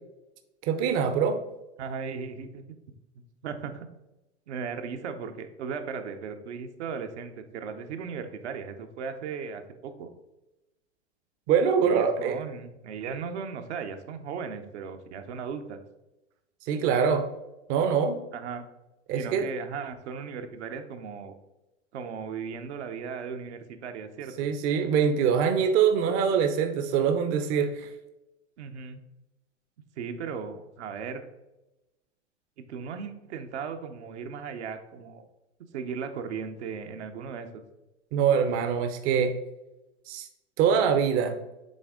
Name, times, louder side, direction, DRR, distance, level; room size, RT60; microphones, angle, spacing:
voice 1, 0.7-1.4 11.5-12.4 16.7-17.2 17.7-18.2 19.1-19.5 24.4-27.9 38.1-39.3 40.1-40.3 40.6-41.4, right 7 dB, 35° right, 7 dB, 0.7 m, -24 dB
voice 2, 1.8-2.8 3.1-3.9 4.5-10.1 11.8-15.8 18.3-18.6 19.1-21.3 21.9-24.5 28.6-29.0 30.0-31.3 32.6-35.3 35.7-37.6, right 6 dB, 65° right, 6 dB, 0.9 m, -37 dB
7.7 x 3.4 x 3.7 m, 0.97 s
hypercardioid pair, 105°, 36 cm